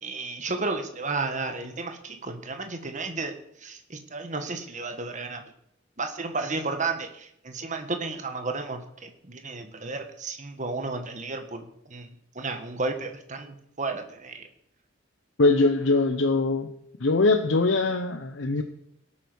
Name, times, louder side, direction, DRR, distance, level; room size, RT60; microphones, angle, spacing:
voice 1, 0.0-5.4 6.0-14.5, right 3 dB, 40° right, 7 dB, 1.6 m, -33 dB
voice 2, 15.4-16.7 17.0-18.6, left 3 dB, 70° left, 7 dB, 0.9 m, -22 dB
17.5 x 8.7 x 6.3 m, 0.76 s
head